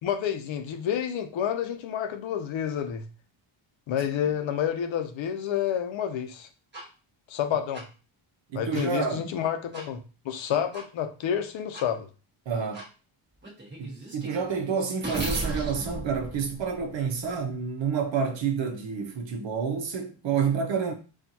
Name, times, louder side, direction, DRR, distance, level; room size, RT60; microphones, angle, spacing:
voice 1, 0.0-3.0 3.9-6.5 7.3-7.8 8.5-10.0 10.2-12.1, left 9 dB, 70° left, 0.7 m, -29 dB
sound 1, 6.7-6.9 7.7-7.8 8.7-8.9 9.7-9.9 10.7-10.9 11.7-11.9 12.7-12.9 13.4-17.3, right 1 dB, 20° right, 1.2 m, -36 dB
voice 2, 8.5-9.3 12.5-12.9 13.8-20.9, right 6 dB, 65° right, 0.9 m, -29 dB
4.3 x 2.5 x 2.7 m
cardioid pair, 120°, 49 cm